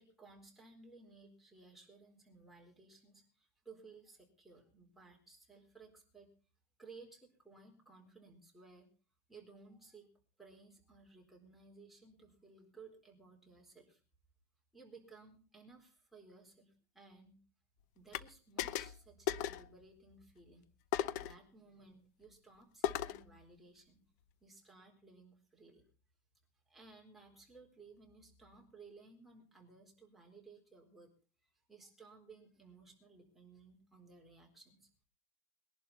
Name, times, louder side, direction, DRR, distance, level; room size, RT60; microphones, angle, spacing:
voice 1, 0.0-6.3 6.8-8.9 9.3-10.1 10.4-14.0 14.7-17.4 17.9-20.7 21.2-24.0 24.4-25.9 26.7-31.1 31.7-35.0, right 4 dB, ahead, -1 dB, 4.2 m, -59 dB
sound 1, 18.1-18.3 18.6-19.0 19.3-19.7 20.9-21.4 22.8-23.3, left 11 dB, 60° left, 0.9 m, -36 dB
21.5 x 11.5 x 4.2 m, 0.36 s
supercardioid pair, 165°, 10 cm